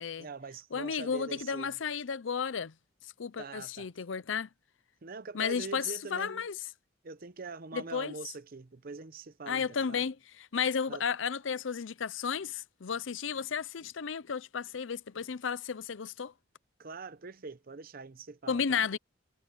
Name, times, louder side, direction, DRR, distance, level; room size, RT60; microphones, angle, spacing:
voice 1, 0.2-1.8 3.4-3.9 5.0-6.5 7.0-10.0 10.9-11.0 16.8-18.9, right 4 dB, 50° right, 0.8 m, -43 dB
voice 2, 0.7-2.7 3.2-4.5 5.3-5.8 6.1-6.5 7.7-8.1 9.5-10.2 10.5-16.3 18.5-19.0, left 6 dB, 80° left, 0.6 m, -33 dB
head